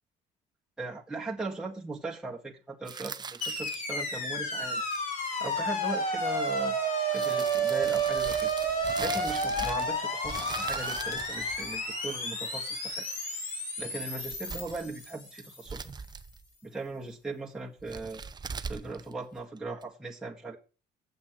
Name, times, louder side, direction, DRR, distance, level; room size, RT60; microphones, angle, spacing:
voice 1, 0.8-4.8 5.4-6.8 7.1-8.5 9.0-13.1 13.8-15.9 16.6-18.2 18.7-20.6, right 3 dB, 5° right, 2.0 m, -38 dB
sound 1, 2.9-4.1 4.7-5.1 6.5-6.6 7.1-10.0 10.2-12.2 14.1-15.0 15.4-16.5 17.8-19.8, right 5 dB, 25° right, 0.6 m, -41 dB
sound 2, 3.4-15.7, right 1 dB, 50° left, 3.9 m, -31 dB
8.0 x 6.1 x 7.5 m
cardioid pair, 110°, 17 cm